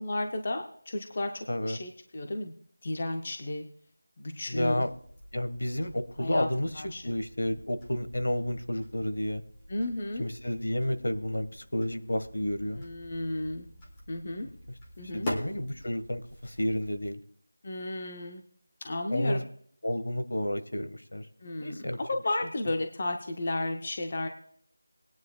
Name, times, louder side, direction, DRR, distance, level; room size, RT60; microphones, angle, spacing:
voice 1, 0.0-2.5 2.8-3.6 4.2-4.8 6.2-6.5 6.7-7.1 9.7-10.3 12.7-13.7 14.1-14.5 15.0-15.3 17.6-18.4 18.8-19.5 21.4-24.3, left 2 dB, 25° left, 5 dB, 0.6 m, -33 dB
voice 2, 1.5-1.8 4.5-4.9 5.3-6.7 7.0-9.4 10.2-12.8 15.0-17.2 19.1-19.4 19.8-21.3 21.6-22.0, left 1 dB, 65° left, 10 dB, 1.4 m, -31 dB
sound 1, 4.5-17.1, equal, 10° left, 1.2 m, -46 dB
20.0 x 9.5 x 2.3 m, 0.64 s
figure-of-eight pair, 180°, 0 cm